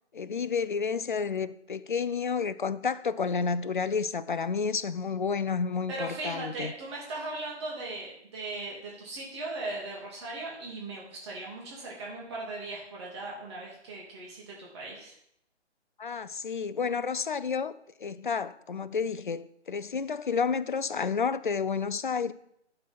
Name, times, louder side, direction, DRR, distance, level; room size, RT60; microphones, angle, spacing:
voice 1, 0.1-6.7 16.0-17.7 18.0-22.3, left 5 dB, 45° left, 0.4 m, -30 dB
voice 2, 5.9-15.1, right 2 dB, 25° right, 1.8 m, -38 dB
11.5 x 3.9 x 5.8 m
figure-of-eight pair, 145°, 35 cm